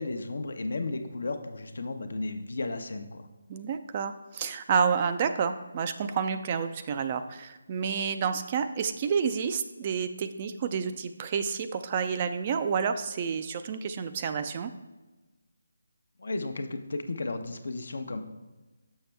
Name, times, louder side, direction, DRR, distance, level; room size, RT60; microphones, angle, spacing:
voice 1, 0.0-3.3 16.2-18.2, left 2 dB, 70° left, 7 dB, 0.7 m, -34 dB
voice 2, 3.5-14.7, right 6 dB, 30° right, 9 dB, 0.3 m, -29 dB
6.4 x 6.0 x 3.3 m, 1.1 s
figure-of-eight pair, 160°, 0 cm